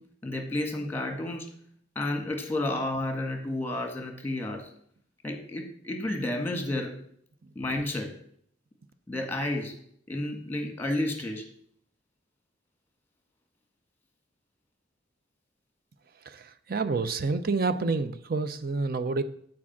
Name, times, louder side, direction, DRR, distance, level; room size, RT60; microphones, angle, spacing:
voice 1, 0.2-1.5 1.9-4.7 5.2-6.9 7.5-8.1 9.1-9.7 10.1-11.4, left 1 dB, 10° left, 3 dB, 1.7 m, -31 dB
voice 2, 16.2-19.2, right 4 dB, 50° right, 11 dB, 0.6 m, -28 dB
8.7 x 4.7 x 7.3 m, 0.64 s
head